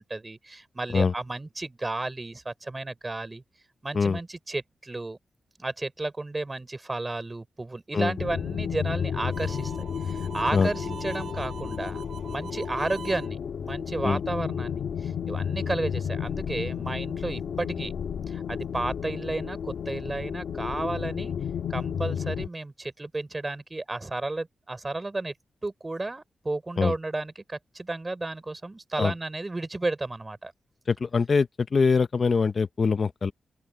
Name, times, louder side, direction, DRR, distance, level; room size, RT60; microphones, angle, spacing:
voice 1, 0.0-3.4 3.8-5.2 5.6-17.9 18.3-21.3 21.7-25.3 25.6-30.5, right 2 dB, 20° right, 5.4 m, -33 dB
sound 1, 8.2-22.5, left 7 dB, 80° left, 1.8 m, -32 dB
Harmonica, 9.2-13.3, right 7 dB, 75° right, 6.5 m, -43 dB
voice 2, 30.9-33.3, left 5 dB, 45° left, 0.9 m, -23 dB
open air
wide cardioid pair, 120°, 0 cm